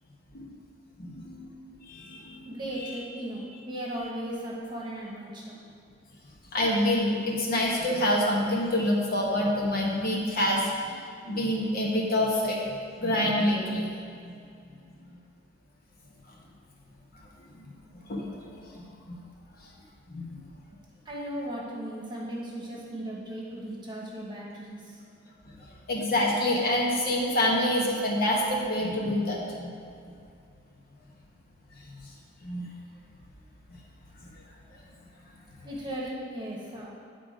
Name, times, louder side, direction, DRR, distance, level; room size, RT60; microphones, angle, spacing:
voice 1, 1.0-2.4 6.5-11.0 11.2-12.6 13.0-13.9 18.1-18.2 18.5-19.2 20.1-20.3 25.9-29.7 32.4-32.6, left 1 dB, 50° left, -2 dB, 1.1 m, -27 dB
voice 2, 2.4-5.6 21.0-25.0 35.6-36.9, right 1 dB, 25° right, -4 dB, 1.2 m, -37 dB
9.0 x 3.8 x 5.0 m, 2.4 s
head